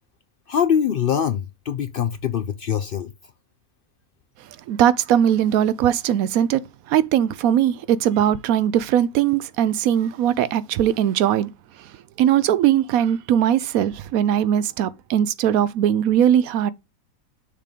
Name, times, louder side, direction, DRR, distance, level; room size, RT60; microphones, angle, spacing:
voice 1, 0.5-3.1, left 8 dB, 70° left, 0.5 m, -23 dB
voice 2, 4.7-6.6 6.9-11.5 11.8-11.9 12.2-16.7, right 10 dB, 75° right, 1.0 m, -20 dB
6.6 x 3.6 x 5.1 m
omnidirectional pair, 1.5 m